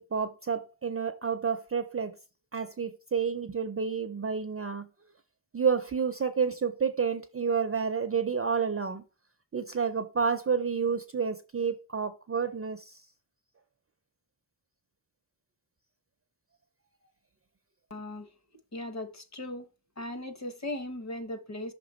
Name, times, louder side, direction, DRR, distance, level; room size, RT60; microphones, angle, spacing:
voice 1, 0.0-2.2 2.5-4.9 5.5-9.0 9.5-13.0, right 6 dB, 30° right, 0.4 m, -30 dB
voice 2, 17.9-18.3 18.7-19.7 20.0-21.7, left 1 dB, 35° left, 0.9 m, -38 dB
5.9 x 3.3 x 4.9 m
wide cardioid pair, 155°, 47 cm